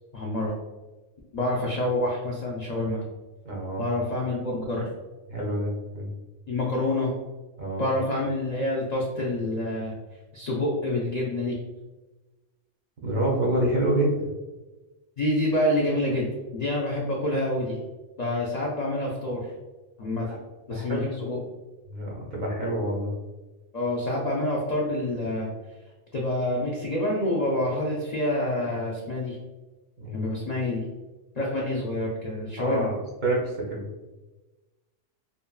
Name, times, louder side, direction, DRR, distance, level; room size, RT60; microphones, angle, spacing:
voice 1, 0.1-0.6 1.3-3.0 3.8-4.9 6.5-7.1 7.8-10.0 10.3-11.6 15.2-17.8 18.2-19.5 20.0-20.3 20.7-21.4 23.7-25.5 26.1-29.4 30.1-30.8 31.4-32.9, left 1 dB, 85° left, -3 dB, 0.3 m, -27 dB
voice 2, 3.5-3.9 5.3-6.1 7.6-7.9 13.0-14.2 20.3-20.4 20.7-21.0 21.9-23.1 30.0-30.3 32.6-33.9, right 1 dB, 50° right, -3 dB, 0.5 m, -27 dB
2.8 x 2.5 x 2.2 m, 1.2 s
omnidirectional pair, 1.3 m